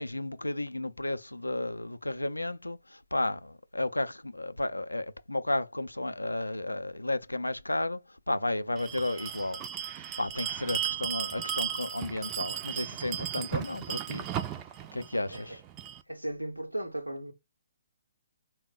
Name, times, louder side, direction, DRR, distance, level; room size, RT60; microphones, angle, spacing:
voice 1, 0.0-14.6 14.9-15.6, left 2 dB, 80° left, 0.4 m, -33 dB
Bell, 8.8-16.0, right 10 dB, 20° right, 0.3 m, -36 dB
voice 2, 16.1-17.3, right 1 dB, 90° right, 0.7 m, -36 dB
3.7 x 2.1 x 3.9 m
figure-of-eight pair, 130°, 0 cm